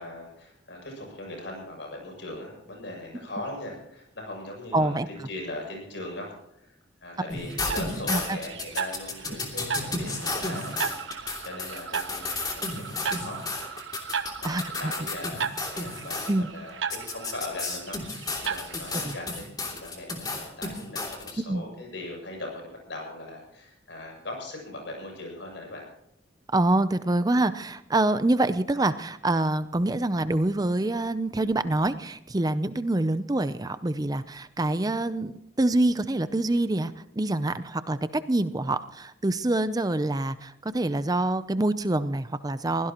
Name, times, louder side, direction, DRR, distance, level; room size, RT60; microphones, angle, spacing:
voice 1, 0.0-10.8 11.1-13.4 14.4-25.8, left 2 dB, 70° left, 0 dB, 7.8 m, -40 dB
voice 2, 4.7-5.1 8.1-8.4 14.4-14.9 16.3-16.5 19.0-19.1 21.5-21.7 26.5-42.9, right 2 dB, 20° right, 12 dB, 0.6 m, -26 dB
sound 1, 7.3-16.3 16.9-21.3, left 3 dB, 20° left, 2.9 m, -33 dB
sound 2, 7.5-19.4, right 6 dB, 80° right, 1.1 m, -36 dB
23.5 x 16.5 x 3.0 m, 0.77 s
head